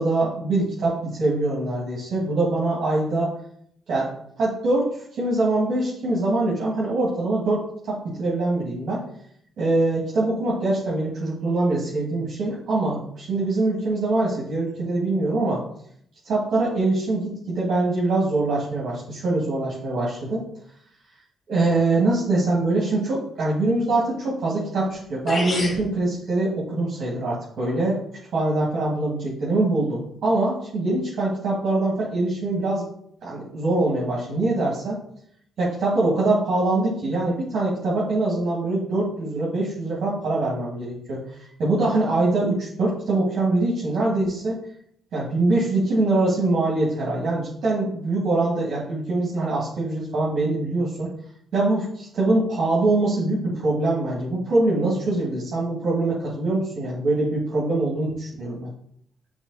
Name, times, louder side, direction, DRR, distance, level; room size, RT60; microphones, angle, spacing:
voice 1, 0.0-3.3 3.9-4.1 4.4-9.0 9.6-15.6 16.2-20.4 21.5-28.0 28.3-32.9 33.2-35.0 35.6-44.6 45.1-51.1 51.5-58.7, right 2 dB, 65° right, -6 dB, 1.9 m, -23 dB
sound 1, 24.9-25.0 25.3-25.8, left 1 dB, 35° left, 1.5 m, -27 dB
6.3 x 3.7 x 4.0 m, 0.68 s
cardioid pair, 90°, 0 cm